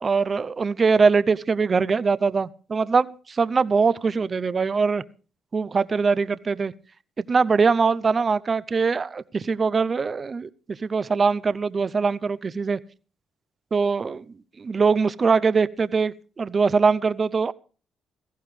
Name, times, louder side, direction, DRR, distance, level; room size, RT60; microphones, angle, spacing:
voice 1, 0.0-5.0 5.5-6.7 7.2-10.5 10.8-12.8 13.7-14.2 14.6-16.1 16.4-17.5, right 5 dB, 35° right, 0.6 m, -22 dB
17.0 x 14.5 x 3.3 m
cardioid pair, 90°, 0 cm